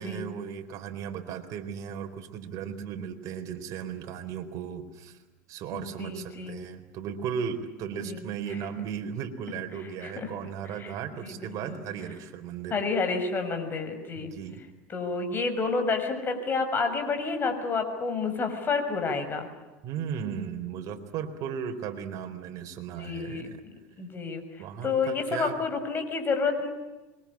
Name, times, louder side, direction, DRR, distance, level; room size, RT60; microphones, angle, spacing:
voice 1, 0.0-5.2 5.5-12.8 14.1-14.6 19.8-23.6 24.6-25.6, right 7 dB, 55° right, 6 dB, 4.1 m, -36 dB
voice 2, 5.7-6.6 8.0-8.2 10.0-10.3 10.8-10.9 11.2-11.8 12.7-14.3 14.9-19.5 23.0-23.5 24.0-24.4 24.8-26.7, left 4 dB, 30° left, 7 dB, 6.6 m, -29 dB
26.5 x 23.5 x 8.8 m, 1.2 s
supercardioid pair, 110°, 7 cm